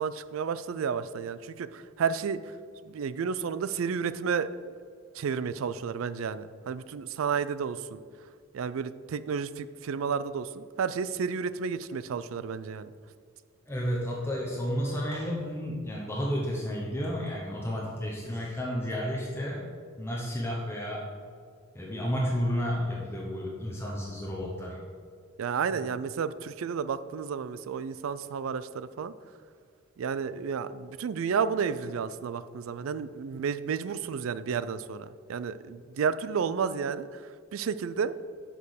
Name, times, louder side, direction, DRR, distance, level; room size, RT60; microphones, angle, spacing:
voice 1, 0.0-2.5 2.9-4.7 5.1-8.0 8.5-12.9 25.4-29.1 30.0-37.2 37.5-38.1, right 6 dB, 70° right, 14 dB, 0.4 m, -31 dB
voice 2, 13.7-19.7 20.0-21.1 21.7-24.8 25.7-25.8, equal, 10° left, -4 dB, 0.9 m, -32 dB
6.2 x 5.4 x 6.5 m, 2.1 s
head